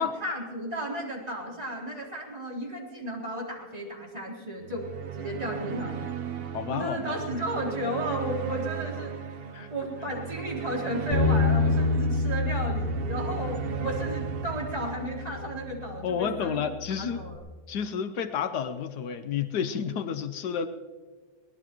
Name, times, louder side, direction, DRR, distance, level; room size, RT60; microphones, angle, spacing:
voice 1, 0.0-4.9 5.1-6.0 6.7-16.6 17.0-17.4, right 1 dB, 25° right, -4 dB, 4.0 m, -34 dB
sound 1, 4.6-16.0, right 8 dB, 55° right, 0.7 m, -36 dB
voice 2, 6.5-7.4 9.5-9.7 16.0-17.2 17.7-20.7, left 7 dB, 85° left, 10 dB, 1.4 m, -30 dB
Bass guitar, 11.1-17.4, left 3 dB, 65° left, 2.1 m, -29 dB
22.5 x 19.0 x 3.0 m, 1.5 s
omnidirectional pair, 1.7 m